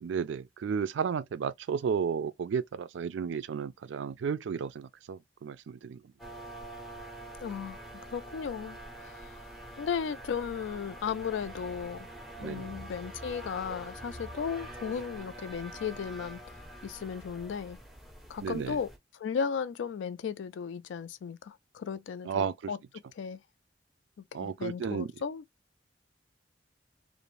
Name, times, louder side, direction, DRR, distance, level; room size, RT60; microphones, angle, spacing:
voice 1, 0.0-6.1 12.4-12.8 18.4-18.8 22.2-22.7 24.3-25.1, right 6 dB, 75° right, 0.3 m, -33 dB
sound 1, 6.2-19.0, right 1 dB, ahead, 0.5 m, -45 dB
voice 2, 7.4-9.4 9.8-12.1 12.4-16.4 16.8-17.8 18.3-22.8 23.2-23.4 24.4-25.4, left 6 dB, 75° left, 0.3 m, -35 dB
2.5 x 2.0 x 3.0 m
head